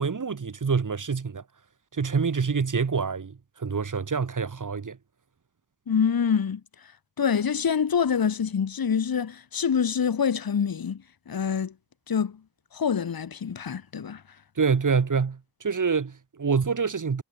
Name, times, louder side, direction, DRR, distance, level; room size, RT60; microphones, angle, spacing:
voice 1, 0.0-1.4 1.9-5.0 14.6-17.2, right 5 dB, 50° right, 3.1 m, -26 dB
voice 2, 5.9-6.6 7.2-11.0 11.3-11.7 12.1-12.4 12.7-14.2, left 7 dB, 60° left, 2.1 m, -25 dB
wide cardioid pair, 85°, 40 cm